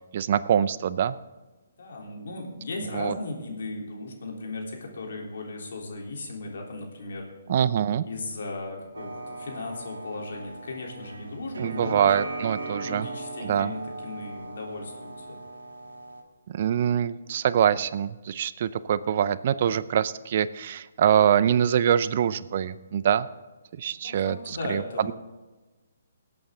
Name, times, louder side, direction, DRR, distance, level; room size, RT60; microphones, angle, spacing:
voice 1, 0.1-1.2 2.9-3.1 7.5-8.1 11.6-13.1 13.4-13.7 16.5-23.3 23.8-25.1, right 9 dB, 50° right, 16 dB, 0.5 m, -24 dB
voice 2, 1.8-7.3 8.0-12.1 12.8-15.4 23.9-25.1, left 2 dB, 65° left, -1 dB, 3.5 m, -36 dB
sound 1, 8.9-16.2, right 2 dB, 75° right, 1.8 m, -38 dB
19.0 x 8.5 x 3.8 m, 1.2 s
figure-of-eight pair, 140°, 0 cm